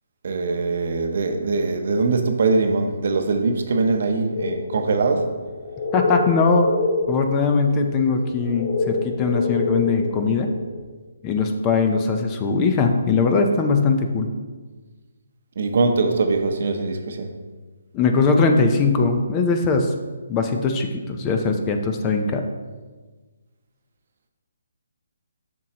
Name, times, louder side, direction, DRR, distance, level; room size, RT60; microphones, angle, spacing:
voice 1, 0.2-5.3 15.6-17.3, right 3 dB, 60° right, 6 dB, 0.8 m, -22 dB
sound 1, 4.3-10.8, left 3 dB, 70° left, 1.8 m, -28 dB
voice 2, 5.9-6.7 7.1-10.5 11.2-14.3 17.9-19.9 20.3-22.4, left 4 dB, 20° left, 5 dB, 0.5 m, -20 dB
7.2 x 6.2 x 2.9 m, 1.3 s
hypercardioid pair, 155°, 0 cm